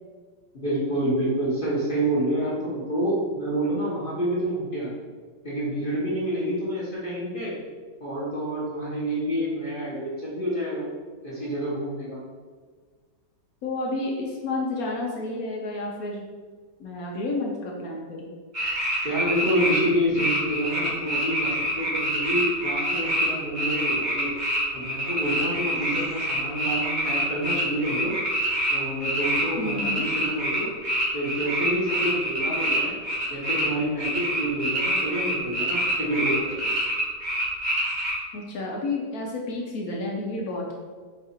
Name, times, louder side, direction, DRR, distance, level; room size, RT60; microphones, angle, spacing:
voice 1, 0.5-4.9 5.4-7.6 8.0-10.8 11.2-12.2 19.0-24.3 24.7-28.1 28.7-30.7 31.1-32.9 33.3-36.5, equal, 35° left, -7 dB, 1.0 m, -28 dB
voice 2, 13.6-16.2 16.8-18.3 29.6-30.0 38.3-40.7, left 2 dB, 65° left, -1 dB, 1.0 m, -30 dB
sound 1, 18.5-19.8 20.1-23.3 23.5-33.7 34.0-38.1, right 1 dB, 30° right, 1.0 m, -26 dB
4.8 x 2.4 x 4.2 m, 1.5 s
omnidirectional pair, 1.9 m